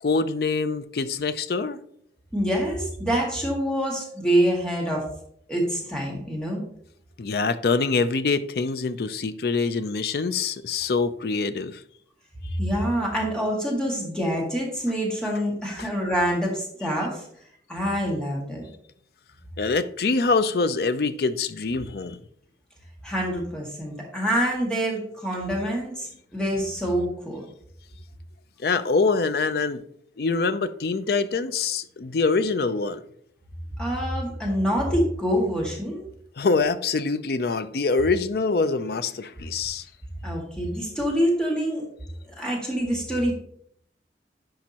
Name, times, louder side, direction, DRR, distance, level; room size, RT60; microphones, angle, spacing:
voice 1, 0.0-1.8 7.2-11.8 19.6-22.2 28.6-29.8 30.2-33.0 36.4-39.9, left 4 dB, 60° left, 0.4 m, -24 dB
voice 2, 2.3-5.1 5.5-6.6 12.6-17.3 17.7-18.6 23.0-27.5 33.8-36.0 40.2-41.9 42.4-43.3, equal, 5° left, 1.9 m, -26 dB
10.5 x 5.2 x 2.9 m
head